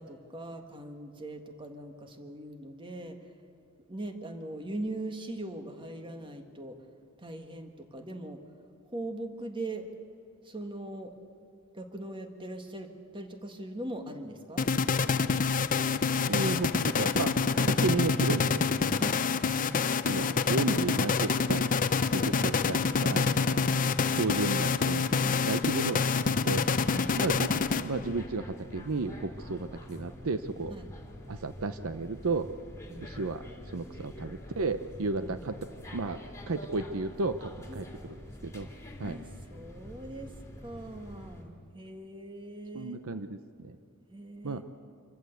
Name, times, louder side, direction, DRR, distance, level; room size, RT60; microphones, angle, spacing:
voice 1, 0.0-3.2 3.9-6.9 7.2-8.4 8.8-9.9 10.4-11.1 11.7-14.7 19.0-19.4 22.2-22.6 22.9-23.3 23.8-24.0 25.2-25.5 26.9-27.2 30.7-30.8 32.9-33.1 35.2-35.4 37.7-37.8 39.0-39.2 39.5-40.3 40.6-43.0 44.1-44.6, right 1 dB, 25° right, 5 dB, 1.7 m, -41 dB
sound 1, 14.6-28.2, left 5 dB, 40° left, 0.6 m, -27 dB
voice 2, 16.3-17.3 17.7-18.5 19.7-21.7 22.1-23.6 24.1-26.1 26.4-26.6 27.2-30.7 31.3-32.5 33.0-35.6 35.9-36.2 36.5-37.9 38.4-38.7 39.0-39.2 42.7-43.8 44.4-44.6, right 3 dB, 65° right, 10 dB, 0.8 m, -33 dB
sound 2, 26.7-41.4, left 1 dB, 15° left, 2.8 m, -46 dB
26.5 x 15.0 x 8.0 m, 2.6 s
head